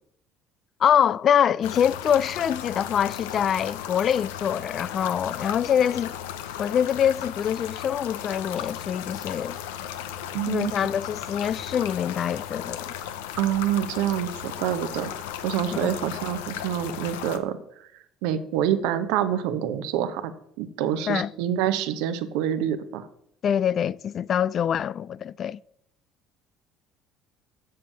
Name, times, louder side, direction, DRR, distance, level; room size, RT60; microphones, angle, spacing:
voice 1, 0.8-6.1 6.6-9.6 10.5-12.9 15.8-15.9 21.1-21.3 23.4-25.6, left 9 dB, 50° left, 0.3 m, -24 dB
sound 1, 1.6-17.4, left 10 dB, 85° left, 0.7 m, -36 dB
voice 2, 10.3-10.7 13.4-17.6 18.2-20.3 20.6-23.1, right 10 dB, 75° right, 0.9 m, -26 dB
7.7 x 6.9 x 6.7 m
hypercardioid pair, 70°, 0 cm